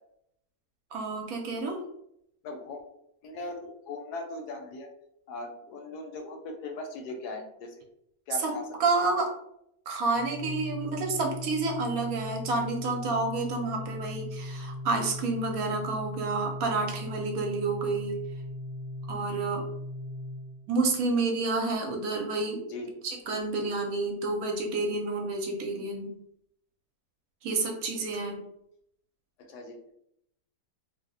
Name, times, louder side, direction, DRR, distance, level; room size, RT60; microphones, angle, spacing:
voice 1, 0.9-1.8 8.4-8.5 8.8-9.3 9.9-18.2 19.1-19.6 20.7-22.6 23.0-26.1 27.4-28.4, right 3 dB, 70° right, 2 dB, 1.0 m, -29 dB
voice 2, 2.4-2.8 3.2-4.9 5.3-7.8 8.3-8.7 22.7-22.9 29.4-29.8, left 3 dB, 85° left, 4 dB, 1.2 m, -39 dB
Organ, 10.1-21.0, left 1 dB, 35° right, 0.8 m, -39 dB
2.7 x 2.0 x 3.8 m, 0.75 s
omnidirectional pair, 1.7 m